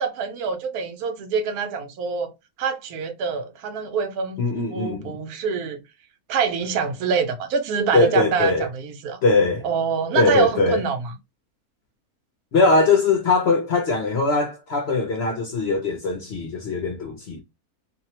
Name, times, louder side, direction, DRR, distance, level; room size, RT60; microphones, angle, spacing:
voice 1, 0.0-2.3 2.6-4.4 4.7-5.8 6.3-9.2 9.6-11.1, right 6 dB, 80° right, 1.1 m, -25 dB
voice 2, 4.4-5.2 7.9-8.7 9.2-9.6 10.1-10.8 12.5-17.4, left 3 dB, 60° left, 0.7 m, -21 dB
2.7 x 2.1 x 2.8 m
omnidirectional pair, 1.6 m